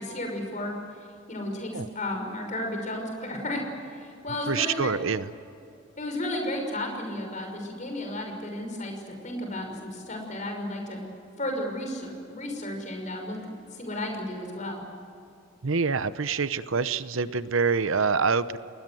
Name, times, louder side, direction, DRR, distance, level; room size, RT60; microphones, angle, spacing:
voice 1, 0.0-3.6 3.9-4.9 6.0-11.0 11.4-13.4 13.7-14.8, left 1 dB, 35° left, 3 dB, 6.1 m, -33 dB
voice 2, 4.5-5.3 15.6-18.6, right 5 dB, 70° right, 13 dB, 0.8 m, -26 dB
30.0 x 21.0 x 7.9 m, 2.5 s
head